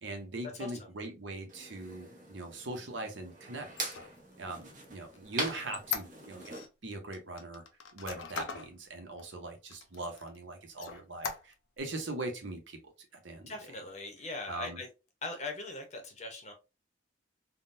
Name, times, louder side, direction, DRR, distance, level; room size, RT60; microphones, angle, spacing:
voice 1, 0.0-3.9 4.4-7.6 7.9-12.8 13.2-13.5 14.5-14.8, right 2 dB, 70° right, 0.8 m, -41 dB
sound 1, 1.5-6.6, right 3 dB, 40° right, 0.9 m, -42 dB
Squeak, 3.7-6.7 7.1-8.7 9.2-9.3 9.7-10.4 10.7-11.8, left 6 dB, 75° left, 0.5 m, -40 dB
voice 2, 13.5-14.9 15.2-16.5, left 3 dB, 35° left, 0.8 m, -40 dB
3.6 x 2.2 x 2.6 m
head